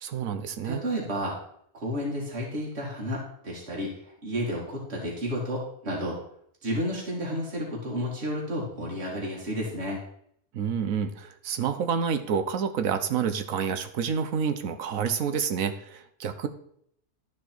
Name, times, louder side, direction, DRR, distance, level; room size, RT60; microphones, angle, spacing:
voice 1, 0.0-0.8 10.5-16.5, right 7 dB, 65° right, 10 dB, 1.1 m, -28 dB
voice 2, 0.6-1.4 1.7-3.9 4.2-6.2 6.6-10.0, equal, 45° right, -4 dB, 2.2 m, -31 dB
12.0 x 4.6 x 4.5 m, 0.69 s
omnidirectional pair, 1.6 m